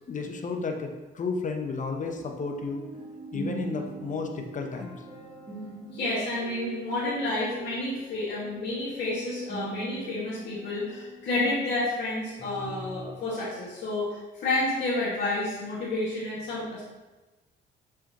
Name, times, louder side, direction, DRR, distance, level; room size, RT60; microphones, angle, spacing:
voice 1, 0.1-2.8 3.3-5.0, left 4 dB, 40° left, 4 dB, 0.9 m, -32 dB
sound 1, 2.0-12.1 12.4-13.2, right 2 dB, 25° right, 1.7 m, -42 dB
voice 2, 5.9-16.8, left 2 dB, 65° left, -10 dB, 2.0 m, -30 dB
7.0 x 4.8 x 3.0 m, 1.1 s
cardioid pair, 90°, 20 cm